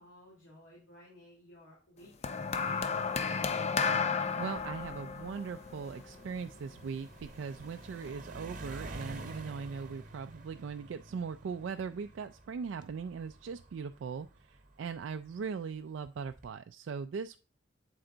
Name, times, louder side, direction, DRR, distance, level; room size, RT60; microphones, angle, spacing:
voice 1, 0.0-2.3 2.6-3.3, left 1 dB, 90° left, -3 dB, 2.5 m, -56 dB
sound 1, 2.2-6.7 7.6-7.8, left 5 dB, 35° left, 0.4 m, -33 dB
voice 2, 4.3-17.4, right 5 dB, 70° right, 8 dB, 0.3 m, -40 dB
sound 2, 4.6-15.3 16.1-16.5, right 1 dB, 40° right, 1.0 m, -49 dB
8.0 x 4.4 x 3.8 m, 0.34 s
head